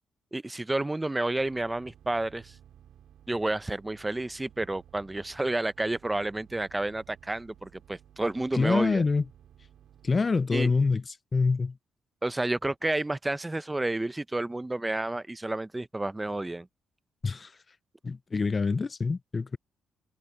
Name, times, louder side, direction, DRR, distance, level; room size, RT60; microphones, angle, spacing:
voice 1, 0.3-2.5 3.3-9.0 10.5-10.7 12.2-16.7, right 2 dB, 15° right, 0.7 m, -30 dB
sound 1, 1.3-10.1, right 10 dB, 70° right, 3.3 m, -56 dB
voice 2, 8.5-9.2 10.0-11.0 11.3-11.8 17.2-17.5 18.0-19.6, left 4 dB, 30° left, 0.3 m, -26 dB
cardioid pair, 90°, 0 cm